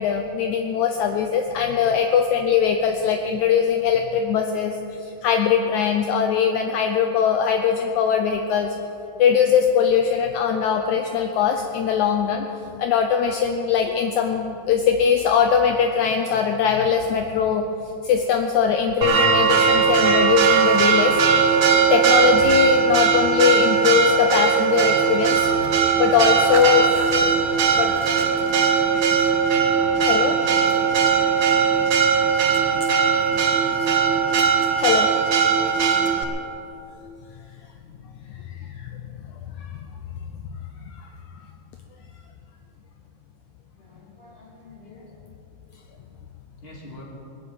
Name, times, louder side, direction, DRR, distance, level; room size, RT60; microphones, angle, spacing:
voice 1, 0.0-8.8 9.2-12.5 12.8-17.7 18.0-21.5 21.9-26.9 27.1-27.2 27.8-27.9 30.0-30.3 31.1-31.2 34.8-35.1 38.3-39.0 39.6-39.7 40.9-41.1, left 7 dB, 75° left, 5 dB, 2.0 m, -21 dB
Church bell, 19.0-36.2, right 6 dB, 70° right, 1.1 m, -19 dB
voice 2, 43.8-45.1 46.6-47.0, left 1 dB, 20° left, -3 dB, 3.0 m, -46 dB
20.5 x 7.4 x 9.0 m, 3.0 s
omnidirectional pair, 3.7 m